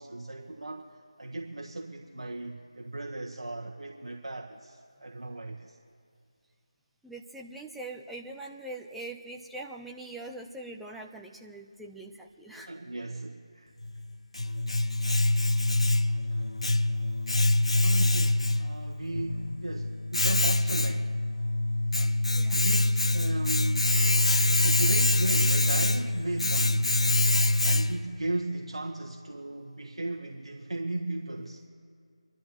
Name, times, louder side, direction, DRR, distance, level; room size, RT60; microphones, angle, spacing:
voice 1, 0.0-5.8 12.5-13.7 16.3-16.4 17.8-21.2 21.9-22.2 22.5-24.0 24.6-27.0 27.6-31.6, right 2 dB, 70° right, 1 dB, 1.4 m, -36 dB
voice 2, 7.0-12.7 22.3-22.6, right 2 dB, ahead, -1 dB, 0.5 m, -42 dB
Domestic sounds home sounds, 13.8-28.2, left 2 dB, 70° left, 0.8 m, -25 dB
27.0 x 12.0 x 3.1 m, 2.2 s
figure-of-eight pair, 165°, 3 cm